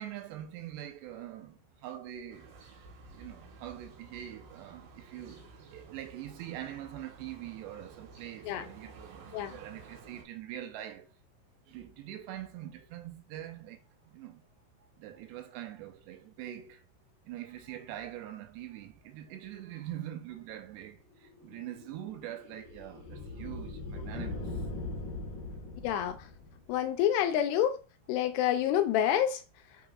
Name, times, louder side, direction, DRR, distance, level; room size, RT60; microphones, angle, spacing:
voice 1, 0.0-2.5 3.1-11.1 11.7-14.5 14.8-16.8 17.3-24.6, right 12 dB, 80° right, 2.8 m, -44 dB
sound 1, 2.3-10.2, right 4 dB, 65° right, 2.8 m, -52 dB
sound 2, 21.2-26.8, left 2 dB, 60° left, 2.2 m, -41 dB
voice 2, 25.8-26.3 26.7-27.8 28.1-29.4, left 10 dB, 85° left, 2.5 m, -28 dB
6.8 x 5.9 x 2.4 m
omnidirectional pair, 5.1 m